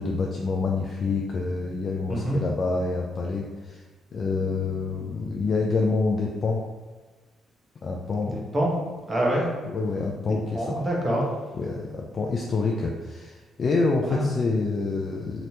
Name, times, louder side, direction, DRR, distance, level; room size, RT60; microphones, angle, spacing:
voice 1, 0.0-3.8 4.1-6.6 7.8-8.4 9.7-10.7 11.6-15.5, left 3 dB, 45° left, -1 dB, 0.3 m, -27 dB
voice 2, 2.1-2.4 8.2-8.7 9.1-9.5 10.5-11.4 14.1-14.2, right 1 dB, 25° right, -3 dB, 0.9 m, -25 dB
3.2 x 2.9 x 2.8 m, 1.3 s
cardioid pair, 90°, 0 cm